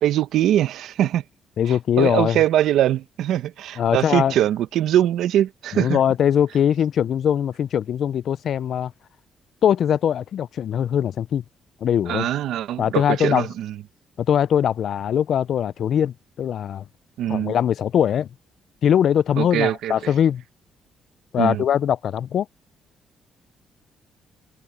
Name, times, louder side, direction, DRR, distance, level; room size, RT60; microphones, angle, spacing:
voice 1, 0.0-1.2 1.7-6.0 12.1-13.7 17.2-17.6 19.4-20.1 21.4-21.6, right 12 dB, 80° right, 0.9 m, -22 dB
voice 2, 1.6-2.4 3.8-4.4 5.7-8.9 9.6-11.4 11.8-12.3 12.8-13.5 14.2-16.8 17.3-18.3 18.8-20.4 21.3-22.5, left 9 dB, 65° left, 0.4 m, -21 dB
cardioid pair, 90°, 0 cm